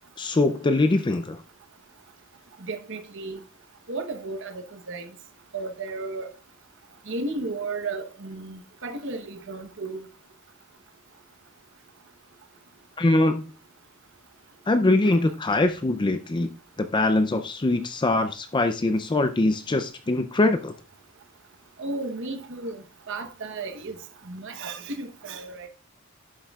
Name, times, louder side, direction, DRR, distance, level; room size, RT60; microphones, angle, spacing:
voice 1, 0.2-1.4 13.0-13.4 14.7-16.5 16.8-20.7, left 2 dB, 20° left, 0.5 m, -22 dB
voice 2, 2.7-3.4 3.9-5.1 5.5-6.3 7.1-10.0 15.0-15.2 21.8-24.0 24.3-25.7, right 3 dB, 60° right, 1.0 m, -34 dB
11.0 x 7.5 x 2.4 m
head